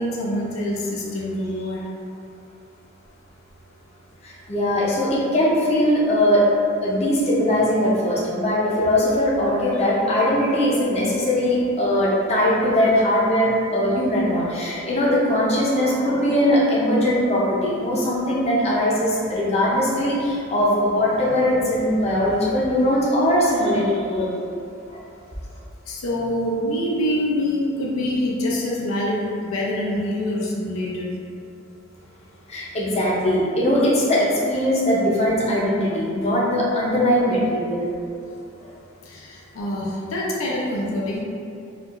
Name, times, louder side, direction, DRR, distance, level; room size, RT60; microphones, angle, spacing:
voice 1, 0.0-1.8 25.9-31.1 39.1-41.2, left 1 dB, 85° left, -4 dB, 0.6 m, -25 dB
voice 2, 4.2-6.5 6.8-24.3 24.9-25.0 32.5-37.9 38.6-38.7, left 1 dB, 30° left, -7 dB, 0.6 m, -20 dB
4.4 x 2.4 x 2.5 m, 2.4 s
head